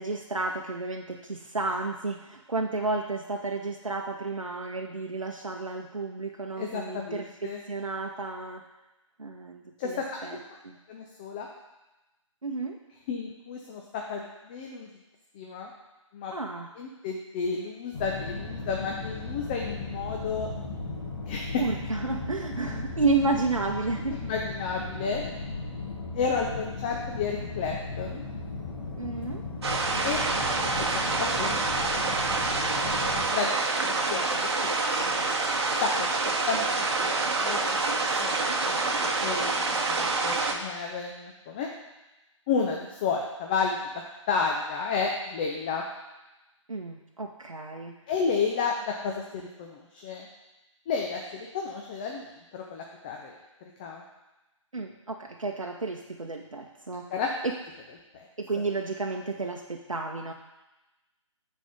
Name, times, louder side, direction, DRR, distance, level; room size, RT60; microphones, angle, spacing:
voice 1, 0.0-7.3 7.7-8.6 9.2-10.4 10.6-10.8 12.4-12.8 16.3-16.7 21.6-24.3 29.0-29.4 29.9-30.5 46.7-47.9 54.7-57.1 58.4-60.3, right 3 dB, 85° right, 2 dB, 0.7 m, -32 dB
voice 2, 6.6-7.6 9.8-10.2 10.9-11.5 13.1-14.9 15.3-15.7 16.1-16.3 16.8-20.5 21.3-21.6 24.1-25.2 26.1-28.2 30.0-30.2 31.2-32.3 33.3-33.6 33.8-35.1 35.8-36.1 36.5-38.4 38.7-38.9 39.2-41.7 42.5-45.9 48.1-50.3 50.9-52.3 52.5-53.4 53.6-54.0 57.1-57.3 58.1-58.3, left 5 dB, 15° left, 1 dB, 0.4 m, -32 dB
sound 1, 17.9-33.3, left 3 dB, 45° left, 2.0 m, -36 dB
sound 2, 29.6-40.5, right 3 dB, 55° right, 1.0 m, -27 dB
9.1 x 4.3 x 5.1 m, 1.0 s
figure-of-eight pair, 140°, 16 cm